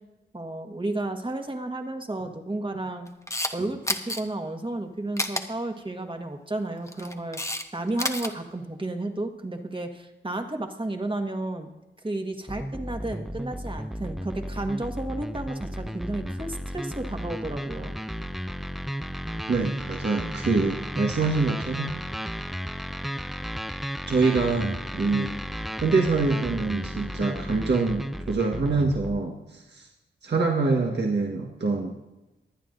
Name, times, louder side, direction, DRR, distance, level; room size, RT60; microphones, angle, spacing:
voice 1, 0.3-3.1 3.5-11.7 12.0-17.9, right 2 dB, 25° right, 4 dB, 1.6 m, -32 dB
Camera, 3.1-3.5 3.9-4.2 5.2-5.4 6.7-7.6 7.9-8.3, left 1 dB, 15° left, 1.0 m, -29 dB
sound 1, 12.5-29.2, equal, ahead, 0.4 m, -34 dB
voice 2, 19.5-21.9 24.0-25.3 25.8-29.9 30.2-32.0, right 3 dB, 60° right, 0 dB, 1.5 m, -25 dB
22.5 x 9.2 x 2.6 m, 1.0 s
cardioid pair, 65°, 20 cm